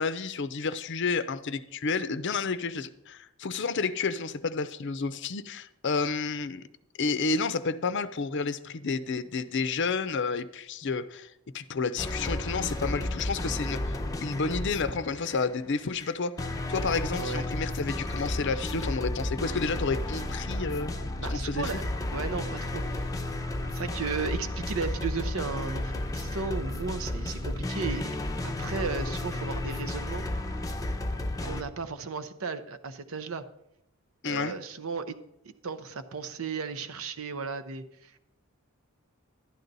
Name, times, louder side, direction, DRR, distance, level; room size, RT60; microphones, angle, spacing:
voice 1, 0.0-6.6 7.0-20.9 21.3-21.7 34.2-34.6, left 4 dB, 55° left, 0.6 m, -30 dB
sound 1, 12.0-15.5 16.0-31.6, left 1 dB, 15° left, 0.7 m, -33 dB
voice 2, 21.2-21.8 22.1-23.1 23.7-28.1 28.4-30.3 31.4-33.4 34.2-35.1 35.6-38.2, right 5 dB, 70° right, 0.7 m, -35 dB
12.0 x 10.0 x 4.0 m
head